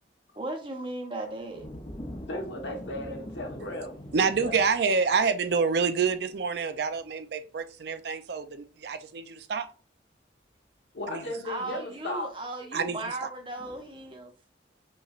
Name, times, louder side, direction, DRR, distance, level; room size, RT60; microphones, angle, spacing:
voice 1, 0.3-1.7 11.4-14.3, right 2 dB, 25° right, 0.8 m, -36 dB
sound 1, 1.3-7.0 13.5-14.1, equal, 25° left, 0.6 m, -44 dB
voice 2, 2.3-4.6 10.9-12.3, left 1 dB, 75° left, 1.2 m, -36 dB
voice 3, 4.1-9.7 11.1-11.2 12.7-13.0, right 5 dB, 60° right, 0.4 m, -27 dB
5.3 x 3.1 x 2.4 m
head